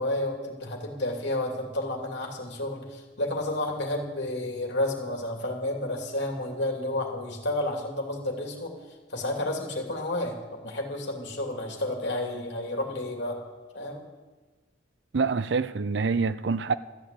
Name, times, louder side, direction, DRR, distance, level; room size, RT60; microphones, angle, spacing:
voice 1, 0.0-8.7 9.1-13.4 13.7-14.0, left 1 dB, 60° left, 2.7 m, -31 dB
voice 2, 15.1-16.7, right 4 dB, 65° right, 0.6 m, -26 dB
13.5 x 9.5 x 8.5 m
head